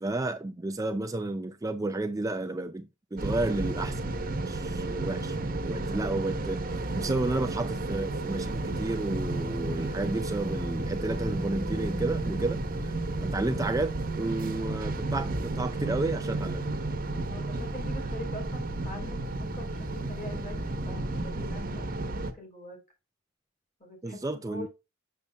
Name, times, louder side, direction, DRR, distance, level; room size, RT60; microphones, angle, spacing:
voice 1, 0.0-4.0 4.5-5.4 5.6-12.9 13.2-16.7 24.0-24.7, right 2 dB, 15° right, 0.4 m, -32 dB
sound 1, 3.2-22.3, right 2 dB, 40° right, 1.1 m, -32 dB
voice 2, 17.3-19.3 19.5-22.8 23.8-24.7, left 1 dB, 35° left, 5.0 m, -44 dB
7.5 x 7.2 x 2.3 m
head